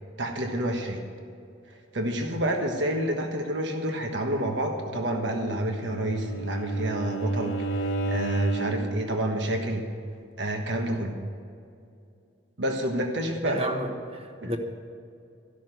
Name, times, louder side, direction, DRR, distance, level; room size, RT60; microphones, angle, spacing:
voice 1, 0.2-1.0 1.9-9.9 10.4-11.1 12.6-13.6 14.4-14.6, right 1 dB, 80° right, 3 dB, 1.3 m, -28 dB
Bowed string instrument, 5.4-9.0, right 2 dB, 90° left, 1.0 m, -31 dB
voice 2, 13.4-14.6, equal, 30° right, 4 dB, 1.2 m, -32 dB
14.0 x 6.4 x 9.2 m, 2.4 s
head